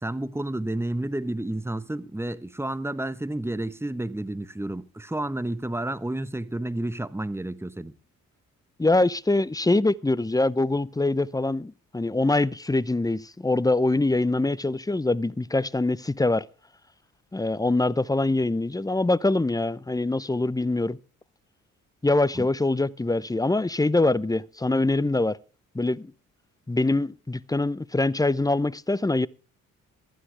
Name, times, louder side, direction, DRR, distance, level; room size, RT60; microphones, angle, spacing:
voice 1, 0.0-7.9 22.3-22.5, right 1 dB, 5° right, 1.1 m, -31 dB
voice 2, 8.8-16.5 17.3-21.0 22.0-25.4 25.7-26.1 26.7-29.3, left 2 dB, 10° left, 0.7 m, -24 dB
19.0 x 12.5 x 3.4 m
hypercardioid pair, 45°, 41 cm